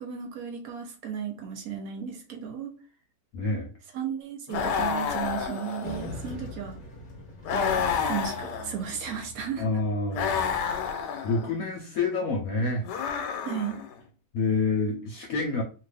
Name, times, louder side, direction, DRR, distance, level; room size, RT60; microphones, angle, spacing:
voice 1, 0.0-2.7 3.9-6.8 7.5-9.7 13.4-13.8, right 8 dB, 65° right, 3 dB, 1.1 m, -35 dB
voice 2, 3.3-3.7 9.6-10.4 11.2-12.8 14.3-15.6, left 3 dB, 65° left, 0 dB, 1.0 m, -27 dB
sound 1, 4.5-6.3 7.5-9.0 10.1-11.5 12.8-13.9, left 6 dB, 85° left, 1.2 m, -30 dB
sound 2, 5.8-10.4, left 1 dB, 40° left, 0.8 m, -43 dB
2.8 x 2.5 x 3.3 m, 0.36 s
omnidirectional pair, 1.8 m